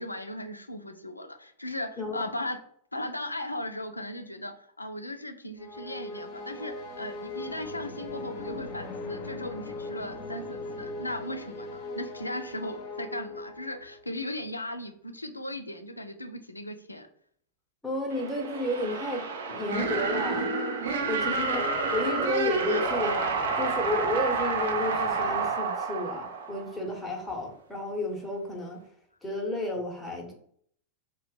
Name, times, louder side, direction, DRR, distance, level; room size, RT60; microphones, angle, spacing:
voice 1, 0.0-2.6 2.9-17.1 22.7-22.8, left 1 dB, 85° left, 6 dB, 0.4 m, -37 dB
sound 1, 5.6-14.0, left 2 dB, 40° left, 0.7 m, -39 dB
voice 2, 17.8-20.5 20.9-28.8 29.2-30.3, left 1 dB, 5° left, 0 dB, 0.8 m, -32 dB
sound 2, 18.1-27.0, right 3 dB, 60° right, 0.6 m, -29 dB
2.9 x 2.2 x 3.1 m, 0.62 s
figure-of-eight pair, 90°, 0 cm